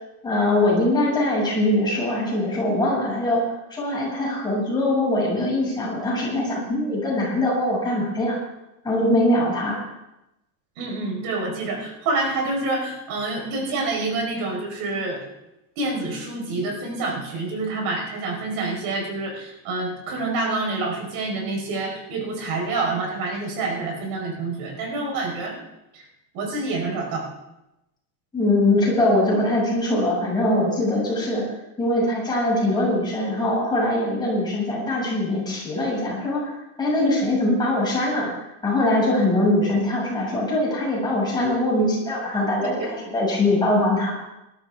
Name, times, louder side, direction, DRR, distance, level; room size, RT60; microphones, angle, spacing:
voice 1, 0.2-3.4 3.7-8.4 8.8-9.8 28.3-31.5 31.8-38.3 38.6-44.1, left 1 dB, 10° left, -6 dB, 6.9 m, -22 dB
voice 2, 10.8-15.2 15.8-25.6 25.9-26.0 26.3-27.3 42.6-42.7, right 3 dB, 50° right, 1 dB, 4.8 m, -27 dB
20.0 x 13.0 x 3.6 m, 0.91 s
supercardioid pair, 160°, 45 cm